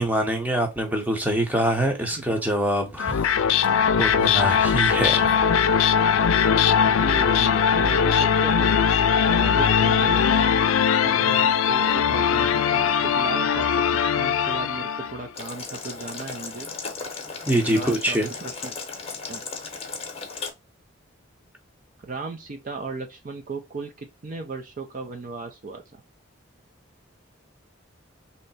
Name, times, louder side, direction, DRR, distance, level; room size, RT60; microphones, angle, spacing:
voice 1, 0.0-3.4 4.0-5.3 17.5-18.3, right 1 dB, 10° right, 0.7 m, -24 dB
sound 1, 3.0-15.2, left 7 dB, 90° left, 0.4 m, -20 dB
voice 2, 6.8-8.8 9.3-10.3 11.0-16.7 17.7-18.7 19.3-19.4 22.0-26.0, right 3 dB, 40° right, 0.5 m, -36 dB
Boiling, 15.3-20.5, left 4 dB, 30° left, 0.8 m, -35 dB
3.2 x 2.8 x 4.0 m
head